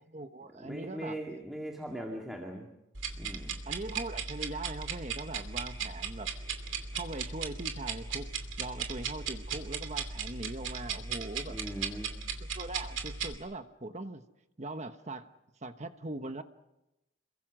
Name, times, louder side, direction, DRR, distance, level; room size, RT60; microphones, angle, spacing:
voice 1, 0.1-1.2 3.7-6.3 6.9-8.3 8.6-11.6 12.4-14.2 14.6-15.3 15.6-16.4, right 2 dB, 35° right, 9 dB, 1.2 m, -41 dB
voice 2, 0.6-2.7 3.2-3.5 11.5-12.1, right 1 dB, ahead, 1 dB, 2.1 m, -40 dB
sound 1, 2.9-13.3, right 6 dB, 70° right, 2.7 m, -37 dB
28.0 x 23.0 x 6.2 m, 0.94 s
head